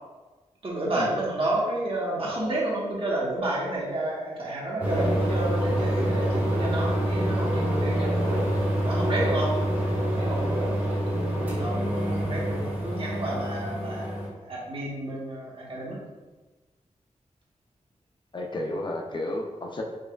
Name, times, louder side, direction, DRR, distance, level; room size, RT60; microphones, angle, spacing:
voice 1, 0.6-9.6 10.2-14.1 14.4-16.0, right 1 dB, 50° right, -5 dB, 1.0 m, -30 dB
sound 1, 4.8-14.3, right 1 dB, 15° right, 1.1 m, -26 dB
voice 2, 18.3-19.8, left 1 dB, 40° left, 1 dB, 0.5 m, -32 dB
5.4 x 2.3 x 2.3 m, 1.2 s
wide cardioid pair, 125°, 12 cm